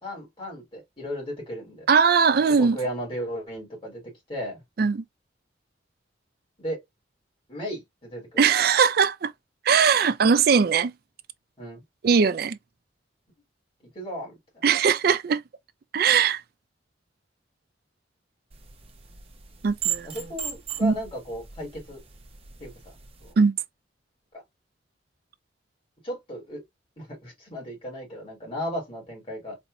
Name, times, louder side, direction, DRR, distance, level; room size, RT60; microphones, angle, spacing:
voice 1, 0.0-1.9 2.6-4.0 4.3-4.6 6.6-6.8 7.5-8.4 11.6-11.8 13.9-14.3 20.0-22.0 22.6-22.7 23.2-23.3 26.0-26.6 27.0-29.6, equal, 30° left, 2.5 m, -35 dB
voice 2, 1.9-2.8 4.8-5.0 8.4-9.3 9.7-10.9 12.0-12.6 14.6-15.4 15.9-16.4 19.6-20.2 20.8-20.9 23.4-23.6, right 6 dB, 55° right, 0.4 m, -20 dB
sound 1, 18.5-23.3, right 10 dB, 35° right, 0.8 m, -37 dB
4.2 x 2.8 x 2.5 m
head